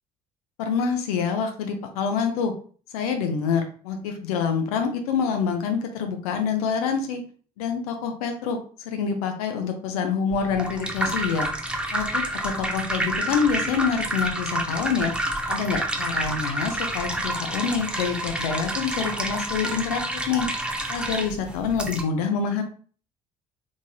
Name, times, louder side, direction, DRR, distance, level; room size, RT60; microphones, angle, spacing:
voice 1, 0.6-2.5 2.9-7.2 7.6-11.5 11.9-15.1 15.5-20.5 20.9-22.6, left 6 dB, 70° left, 5 dB, 0.5 m, -26 dB
sound 1, 10.3-22.0, right 1 dB, 5° right, 0.5 m, -29 dB
3.1 x 2.6 x 2.2 m, 0.43 s
figure-of-eight pair, 55°, 20 cm